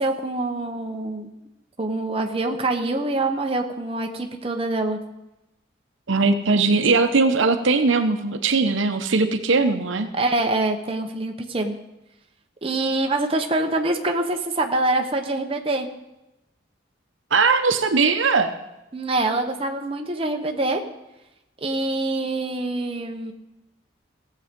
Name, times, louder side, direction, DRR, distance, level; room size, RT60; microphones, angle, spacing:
voice 1, 0.0-1.3 1.8-5.0 10.1-11.8 12.6-15.9 18.9-20.8 21.6-23.3, right 2 dB, 30° right, 4 dB, 0.9 m, -25 dB
voice 2, 6.1-10.1 17.3-18.5, right 4 dB, 80° right, 8 dB, 0.9 m, -20 dB
16.5 x 7.6 x 5.2 m, 0.94 s
head